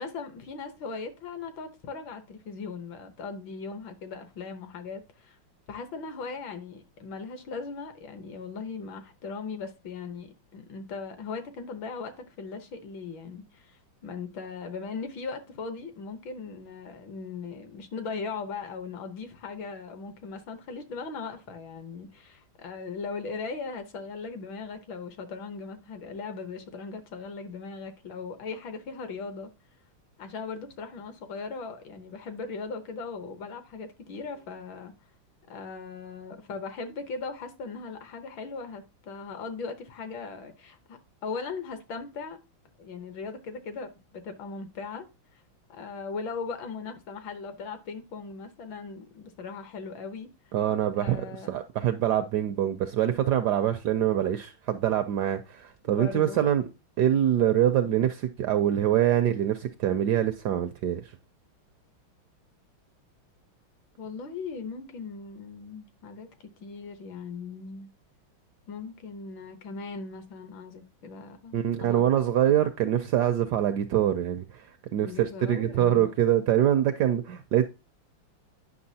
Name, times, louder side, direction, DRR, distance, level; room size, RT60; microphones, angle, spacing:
voice 1, 0.0-5.4 5.7-29.5 30.2-34.9 35.5-42.4 42.8-45.1 45.7-50.3 51.0-51.5 55.8-56.4 64.0-67.9 68.7-72.1 75.0-76.1, left 4 dB, 70° left, 1.7 m, -38 dB
voice 2, 50.5-56.7 57.0-61.0 71.5-74.7 74.9-77.7, right 11 dB, 75° right, 0.9 m, -24 dB
9.5 x 5.9 x 2.7 m
omnidirectional pair, 2.2 m